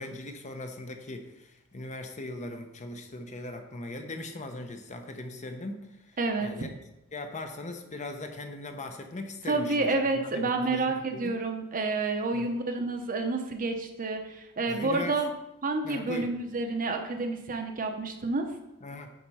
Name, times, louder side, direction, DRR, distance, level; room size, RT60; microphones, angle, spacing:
voice 1, 0.0-6.8 7.1-11.3 12.3-12.5 14.7-15.2 15.8-16.3 18.8-19.1, left 2 dB, 35° left, 5 dB, 0.9 m, -39 dB
voice 2, 6.2-6.5 9.5-15.3 15.6-18.5, right 3 dB, 40° right, 4 dB, 0.9 m, -29 dB
9.5 x 4.4 x 5.5 m, 0.92 s
head